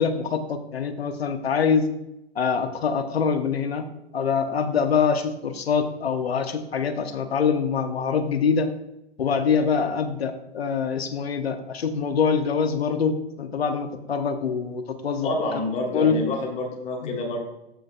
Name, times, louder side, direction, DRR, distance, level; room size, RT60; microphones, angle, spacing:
voice 1, 0.0-1.9 2.4-3.8 4.1-8.7 9.2-13.1 13.4-15.3 15.9-16.2 17.0-17.1, left 6 dB, 70° left, 7 dB, 1.1 m, -24 dB
voice 2, 15.2-17.4, left 2 dB, 20° left, 0 dB, 1.8 m, -28 dB
13.5 x 5.0 x 2.4 m, 0.89 s
figure-of-eight pair, 110°, 32 cm